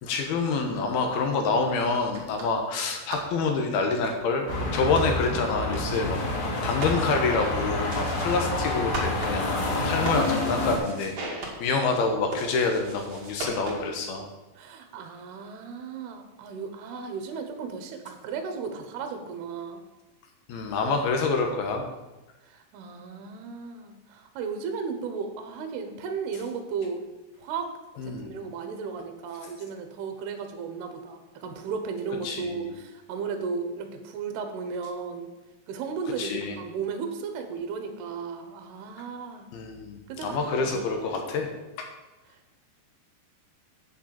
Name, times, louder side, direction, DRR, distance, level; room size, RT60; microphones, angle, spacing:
voice 1, 0.0-14.3 20.5-21.9 28.0-28.3 32.2-32.5 36.2-36.6 39.5-41.5 41.8-41.9, left 4 dB, 70° left, 4 dB, 2.8 m, -27 dB
sound 1, 2.1-14.1, right 2 dB, 45° right, 2.8 m, -40 dB
sound 2, 4.5-10.8, left 2 dB, 50° left, 3.1 m, -28 dB
voice 2, 14.6-19.8 22.4-27.0 27.4-27.7 28.0-35.3 35.7-39.5 40.1-40.8 42.3-42.6, right 5 dB, 70° right, 6 dB, 3.0 m, -35 dB
8.6 x 6.5 x 7.5 m, 1.1 s
omnidirectional pair, 5.0 m